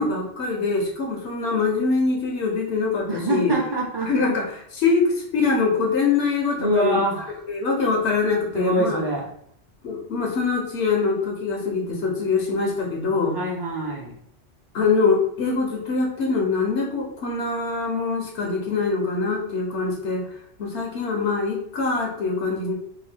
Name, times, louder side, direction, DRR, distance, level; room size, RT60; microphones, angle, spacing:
voice 1, 0.0-3.5 4.0-7.0 7.5-9.0 9.8-13.4 14.7-20.2 20.6-22.7, left 4 dB, 75° left, 0 dB, 0.9 m, -23 dB
voice 2, 3.1-4.1 6.6-7.2 8.5-9.2 13.3-14.1, right 1 dB, 30° right, -3 dB, 0.4 m, -24 dB
2.8 x 2.2 x 3.2 m, 0.69 s
omnidirectional pair, 1.2 m